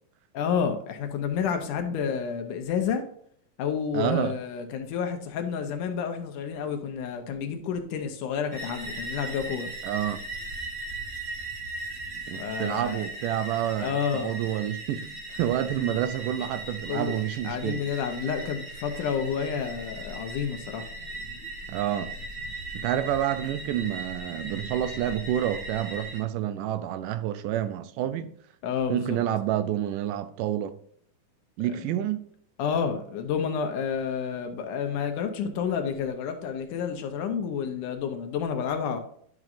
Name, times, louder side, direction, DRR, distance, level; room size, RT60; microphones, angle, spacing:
voice 1, 0.3-3.0 3.6-9.7 12.4-13.0 13.8-14.4 16.9-17.2 17.4-20.9 28.6-29.2 31.8-31.9 32.6-39.0, left 7 dB, 75° left, 2.4 m, -30 dB
voice 2, 3.9-4.3 9.8-10.2 12.3-17.8 21.7-22.1 22.7-28.3 28.9-30.8 31.6-32.3, right 11 dB, 80° right, 2.1 m, -29 dB
sound 1, 8.5-26.2, right 2 dB, 45° right, 1.2 m, -38 dB
11.0 x 6.1 x 2.6 m
omnidirectional pair, 3.9 m